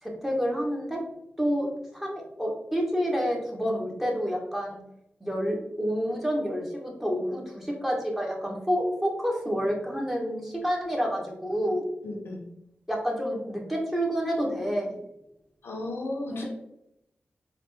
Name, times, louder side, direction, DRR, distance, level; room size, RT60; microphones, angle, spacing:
voice 1, 0.0-1.0 1.4-4.8 5.2-11.8 12.9-15.0 16.3-16.5, equal, 10° right, -2 dB, 1.2 m, -29 dB
voice 2, 12.0-12.4 15.6-16.4, left 2 dB, 85° left, 0 dB, 0.9 m, -34 dB
4.0 x 2.6 x 3.3 m, 0.82 s
cardioid pair, 55°, 4 cm